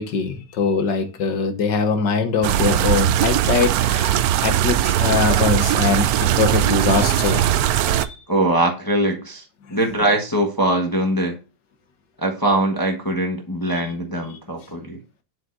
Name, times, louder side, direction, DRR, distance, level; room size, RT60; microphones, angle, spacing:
voice 1, 0.0-8.2, left 5 dB, 65° left, 1.7 m, -22 dB
sound 1, 2.4-8.1, right 11 dB, 75° right, 0.8 m, -19 dB
voice 2, 8.3-9.4 9.7-11.4 12.2-15.0, right 1 dB, 15° left, 0.9 m, -22 dB
8.0 x 7.5 x 2.5 m
omnidirectional pair, 2.1 m